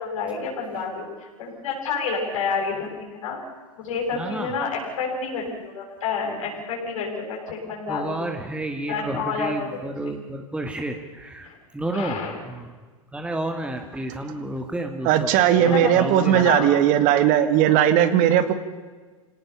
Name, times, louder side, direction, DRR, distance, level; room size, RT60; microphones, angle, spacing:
voice 1, 0.0-1.1 1.4-3.4 3.8-8.1 8.9-9.6 11.4-11.6 11.9-12.3 15.5-16.7 17.4-17.6, left 5 dB, 70° left, -1 dB, 7.4 m, -29 dB
voice 2, 4.1-4.6 7.9-12.8 13.1-15.3 15.6-16.8, right 1 dB, 5° right, 4 dB, 2.0 m, -31 dB
voice 3, 15.1-18.5, right 11 dB, 50° right, 11 dB, 2.1 m, -18 dB
27.0 x 18.0 x 7.0 m, 1.4 s
hypercardioid pair, 90°, 18 cm